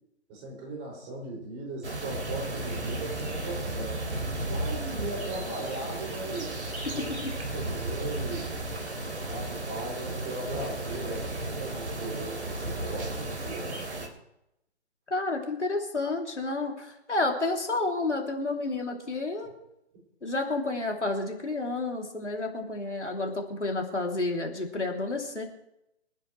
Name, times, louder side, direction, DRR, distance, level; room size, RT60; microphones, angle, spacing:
voice 1, 0.3-4.0 4.5-6.6 7.0-7.1 7.5-8.5 9.2-11.3 11.6-13.8, right 2 dB, 25° right, -2 dB, 6.1 m, -38 dB
sound 1, 1.8-14.1, right 2 dB, 75° right, 3.2 m, -34 dB
voice 2, 15.1-19.5 20.2-25.4, left 2 dB, 85° left, 1 dB, 3.1 m, -30 dB
26.0 x 9.9 x 3.3 m, 0.84 s
figure-of-eight pair, 135°, 34 cm